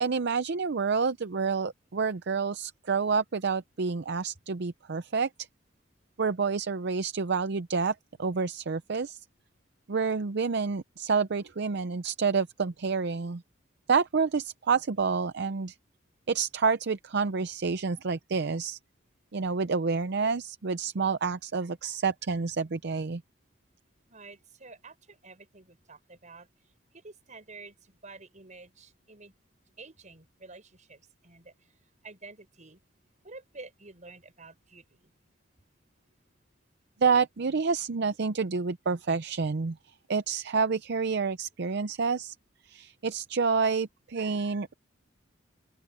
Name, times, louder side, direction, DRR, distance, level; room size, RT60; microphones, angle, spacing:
voice 1, 0.0-5.5 6.2-9.2 9.9-13.4 13.9-15.8 16.3-18.8 19.3-23.2 37.0-42.3 42.6-44.7, right 5 dB, 60° right, 0.6 m, -28 dB
voice 2, 24.1-26.5 26.9-29.3 29.8-31.5 32.0-32.8 33.2-35.1, right 3 dB, 40° right, 6.0 m, -49 dB
open air
head